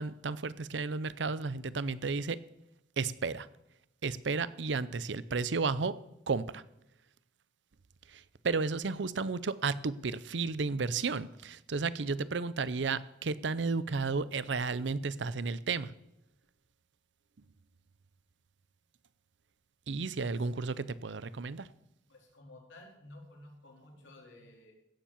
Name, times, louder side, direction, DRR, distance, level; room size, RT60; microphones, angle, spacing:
voice 1, 0.0-2.4 3.0-3.5 4.0-6.0 6.3-6.6 8.1-15.9 19.9-21.7, right 4 dB, 65° right, 17 dB, 0.6 m, -33 dB
voice 2, 20.2-20.5 22.1-24.7, left 1 dB, 85° left, 0 dB, 3.9 m, -54 dB
16.0 x 7.3 x 7.3 m, 0.85 s
head